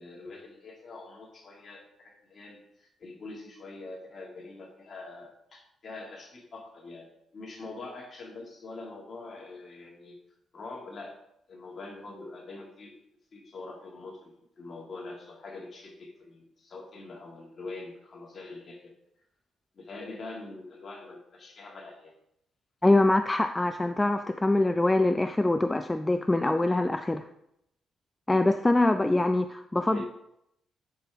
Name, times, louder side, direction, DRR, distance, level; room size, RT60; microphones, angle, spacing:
voice 1, 0.0-10.2 10.5-11.2 11.5-13.0 13.3-18.9 19.7-22.1 29.9-30.0, left 3 dB, 45° left, 0 dB, 2.0 m, -44 dB
voice 2, 22.8-27.2 28.3-30.0, left 2 dB, 15° left, 8 dB, 0.3 m, -24 dB
10.0 x 5.0 x 3.4 m, 0.79 s
cardioid pair, 90°, 0 cm